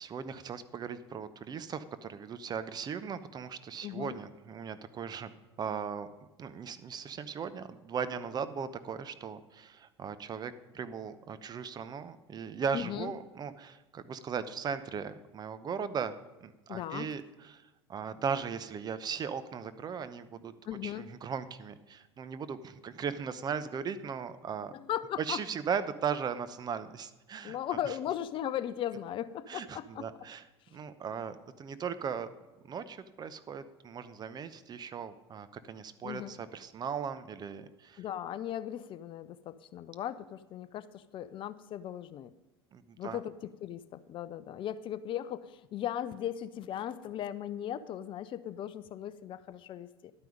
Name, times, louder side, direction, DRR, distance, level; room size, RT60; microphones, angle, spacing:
voice 1, 0.0-6.1 6.4-16.2 16.4-20.5 20.8-24.7 25.2-27.6 27.8-27.9 29.5-30.4 30.7-32.3 32.6-38.0 42.7-43.2, right 6 dB, 30° right, 12 dB, 0.8 m, -38 dB
voice 2, 3.8-4.2 12.7-13.1 16.7-17.1 20.7-21.0 24.7-25.4 27.4-30.1 30.7-30.8 36.0-36.3 38.0-42.3 43.0-43.3 43.6-50.1, left 11 dB, 40° left, 15 dB, 0.6 m, -37 dB
12.0 x 9.2 x 5.1 m, 1.1 s
hypercardioid pair, 80°, 14 cm